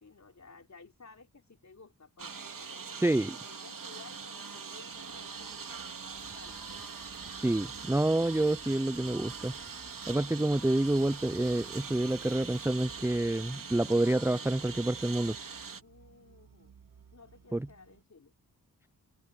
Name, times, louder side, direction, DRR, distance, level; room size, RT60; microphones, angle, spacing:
voice 1, 0.0-6.6 15.8-16.7 17.1-18.3, left 4 dB, 50° left, 3.4 m, -56 dB
Engine, 2.2-15.8, right 5 dB, 65° right, 3.2 m, -43 dB
voice 2, 3.0-3.3 7.4-9.5 10.1-15.4 17.5-17.7, right 1 dB, 5° right, 0.6 m, -28 dB
sound 1, 4.9-18.0, right 7 dB, 85° right, 2.7 m, -59 dB
sound 2, 6.1-13.3, right 2 dB, 30° right, 6.7 m, -57 dB
cardioid pair, 55°, 36 cm